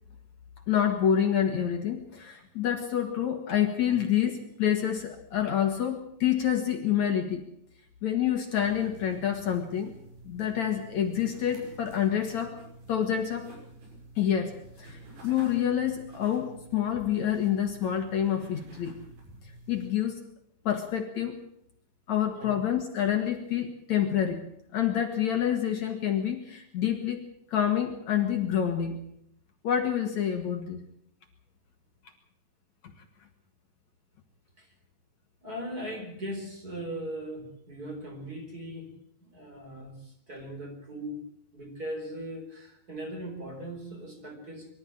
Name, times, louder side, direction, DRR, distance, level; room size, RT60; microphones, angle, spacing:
voice 1, 0.7-7.4 8.0-9.9 10.3-12.6 12.9-13.5 14.2-19.0 19.7-20.2 20.6-21.4 22.1-24.4 24.7-27.2 27.5-29.0 29.6-30.8, left 9 dB, 60° left, 4 dB, 2.8 m, -27 dB
sound 1, 8.5-19.9, right 2 dB, 85° right, 7.7 m, -49 dB
voice 2, 35.4-38.9 39.2-44.7, equal, 25° right, 2 dB, 4.6 m, -39 dB
24.0 x 13.0 x 8.9 m, 0.70 s
omnidirectional pair, 4.1 m